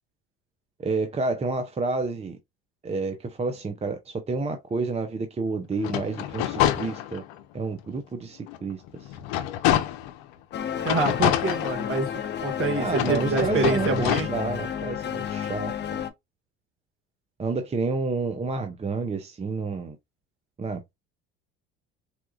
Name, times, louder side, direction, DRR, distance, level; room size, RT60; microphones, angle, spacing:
voice 1, 0.8-2.4 2.8-7.2 7.5-9.1 12.8-16.0 17.4-20.0 20.6-20.9, right 3 dB, 20° right, 0.6 m, -30 dB
sound 1, 5.8-7.4 7.9-8.0 8.5-10.2 10.8-12.3 12.9-14.2, left 12 dB, 80° left, 0.6 m, -27 dB
sound 2, 10.5-16.1, left 9 dB, 35° left, 0.6 m, -31 dB
voice 2, 10.8-12.1 12.4-14.3, right 3 dB, 45° right, 1.6 m, -26 dB
4.3 x 2.4 x 2.3 m
hypercardioid pair, 75°, 29 cm